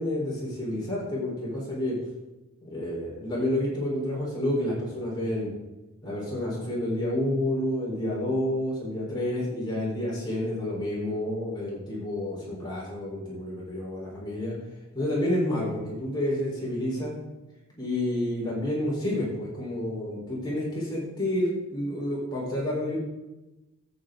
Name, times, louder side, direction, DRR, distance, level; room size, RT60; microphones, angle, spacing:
voice 1, 0.0-2.0 2.6-5.5 6.0-14.6 14.9-17.1 17.8-23.0, left 1 dB, 20° left, -5 dB, 4.3 m, -29 dB
13.5 x 8.7 x 3.9 m, 1.0 s
head